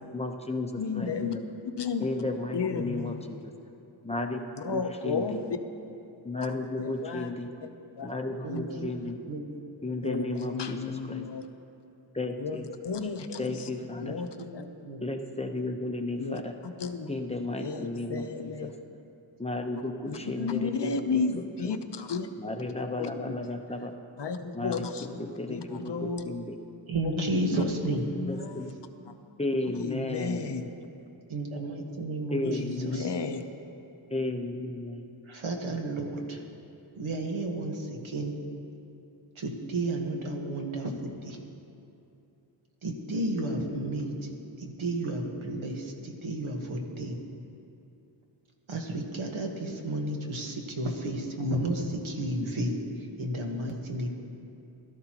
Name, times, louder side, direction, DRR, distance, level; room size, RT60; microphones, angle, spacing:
voice 1, 0.1-1.4 2.0-3.5 4.0-4.4 4.7-5.4 6.2-7.5 8.0-9.2 9.8-10.8 11.1-11.2 12.1-12.7 13.4-14.2 15.0-16.5 17.1-18.7 19.4-21.0 21.4-21.7 22.4-23.9 24.5-25.1 25.4-26.5 28.3-28.7 29.4-30.7 32.3-33.1 34.1-35.0, left 2 dB, 15° left, 3 dB, 0.9 m, -33 dB
voice 2, 0.8-1.3 1.8-2.1 2.5-3.2 4.6-5.6 6.8-7.3 8.0-8.1 8.5-8.9 10.0-11.4 12.4-13.7 14.0-14.6 16.2-16.4 16.8-17.1 17.6-18.7 20.1-22.3 22.9-23.4 24.2-25.1 25.5-26.2 27.0-28.7 29.1-29.2 29.7-30.6 32.4-33.4, left 5 dB, 60° left, 7 dB, 0.9 m, -33 dB
voice 3, 8.4-9.5 14.0-15.0 26.9-28.0 31.3-33.1 35.3-36.4 36.9-38.3 39.3-41.4 42.8-44.3 44.6-47.2 48.7-54.1, right 1 dB, 80° right, 2 dB, 1.6 m, -32 dB
17.0 x 13.0 x 3.0 m, 2.7 s
cardioid pair, 65°, 47 cm